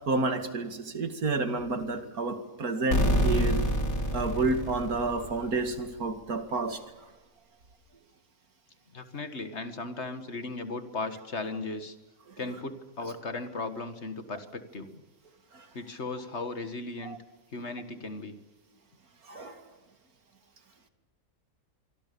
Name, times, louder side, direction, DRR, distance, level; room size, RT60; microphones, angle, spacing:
voice 1, 0.1-3.6 4.1-6.8 15.5-15.7 17.0-17.2 19.3-19.6, right 3 dB, 80° right, 8 dB, 2.7 m, -30 dB
sound 1, 2.9-5.6, equal, 70° left, 4.0 m, -27 dB
voice 2, 8.9-12.0 12.4-15.0 15.7-17.2 17.5-18.4, left 3 dB, 50° left, 10 dB, 2.0 m, -36 dB
25.5 x 24.5 x 7.0 m, 1.1 s
omnidirectional pair, 1.5 m